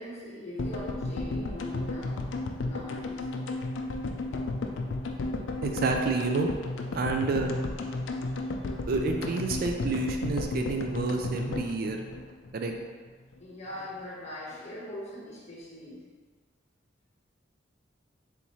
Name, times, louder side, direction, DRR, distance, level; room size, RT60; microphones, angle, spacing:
voice 1, 0.0-2.2 2.5-3.2 13.4-16.0, left 1 dB, 35° left, -5 dB, 1.0 m, -41 dB
sound 1, 0.6-12.8 13.1-13.2 13.3-13.4, left 2 dB, 80° left, 0.4 m, -33 dB
voice 2, 5.6-6.5 6.9-7.5 8.9-12.0 12.5-12.7, right 3 dB, 55° right, 3 dB, 0.4 m, -29 dB
3.6 x 3.0 x 4.1 m, 1.5 s
head